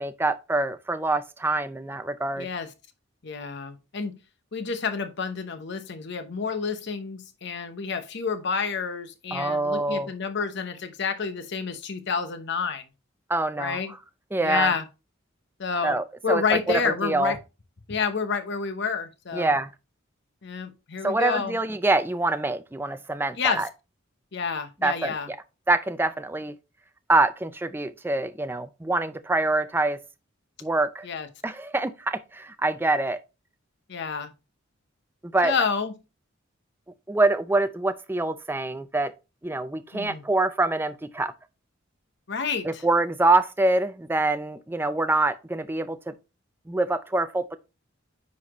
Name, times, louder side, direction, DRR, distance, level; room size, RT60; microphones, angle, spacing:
voice 1, 0.0-2.5 9.3-10.1 13.3-13.8 14.3-14.7 15.8-17.3 19.3-19.7 21.0-23.7 24.8-25.4 25.7-26.5 27.1-30.0 30.6-31.1 31.4-33.2 35.2-35.5 37.1-39.1 39.4-41.3 42.6-46.1 46.7-47.6, right 2 dB, 10° right, 0.4 m, -25 dB
voice 2, 2.4-2.7 3.2-4.1 4.5-12.8 13.6-13.9 14.4-14.9 15.6-16.0 16.2-17.4 17.9-19.6 20.4-21.6 23.4-23.7 24.3-25.3 31.0-31.3 33.9-34.3 35.4-35.9 39.9-40.2 42.3-42.8, left 5 dB, 60° left, 0.8 m, -29 dB
9.6 x 4.1 x 3.0 m
head